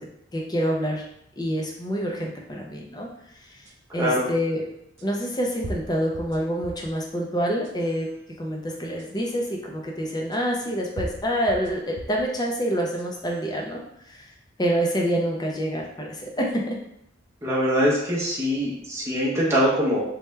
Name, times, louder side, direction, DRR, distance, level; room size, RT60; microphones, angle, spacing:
voice 1, 0.3-1.0 1.4-3.1 3.9-4.7 5.0-8.1 8.4-13.8 14.1-14.3 14.6-16.8, equal, 20° left, -1 dB, 0.5 m, -27 dB
sound 1, 3.7-3.8 5.0-5.1 5.6-6.9 7.5-8.0 9.0-9.1 10.3-10.4 11.0-12.3 12.8-13.4, right 1 dB, 60° right, 0.4 m, -38 dB
voice 2, 17.4-20.0, equal, 15° right, -7 dB, 0.8 m, -23 dB
3.2 x 2.2 x 3.1 m, 0.76 s
head